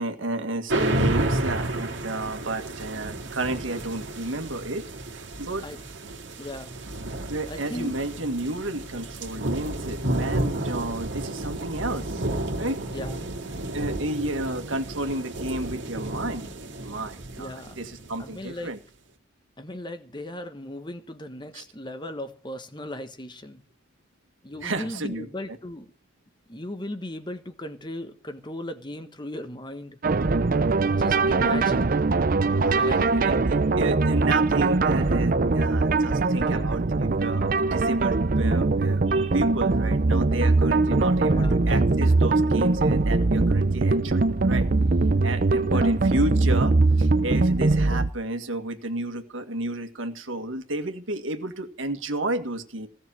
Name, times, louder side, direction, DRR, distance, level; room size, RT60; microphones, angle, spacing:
voice 1, 0.0-4.9 5.4-5.7 7.3-12.2 12.6-12.8 13.7-16.4 16.8-18.8 21.5-21.6 24.6-25.6 31.4-31.6 32.5-44.7 45.2-52.9, right 2 dB, 85° right, 2.0 m, -31 dB
sound 1, 0.7-18.5, right 1 dB, 65° right, 2.4 m, -31 dB
voice 2, 6.4-6.8 7.5-8.0 12.9-13.2 17.4-17.8 18.2-18.7 19.6-23.6 24.4-25.9 26.5-30.0 30.9-31.9 32.7-33.2 36.4-36.7 41.2-41.6 45.6-45.9, left 1 dB, 25° left, 1.4 m, -37 dB
sound 2, 30.0-48.1, right 3 dB, 45° right, 0.6 m, -22 dB
17.0 x 6.6 x 9.0 m
head